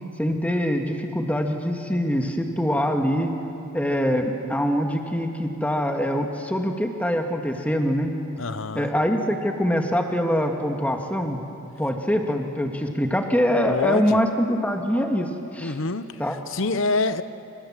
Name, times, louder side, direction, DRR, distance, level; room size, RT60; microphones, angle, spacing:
voice 1, 0.2-3.3 3.7-8.1 8.7-11.4 11.8-15.3 15.5-15.7 16.2-16.4, equal, 5° left, 3 dB, 1.8 m, -24 dB
voice 2, 8.4-8.9 13.7-14.2 15.6-17.2, left 3 dB, 55° left, 12 dB, 0.8 m, -26 dB
27.5 x 27.0 x 7.5 m, 2.8 s
head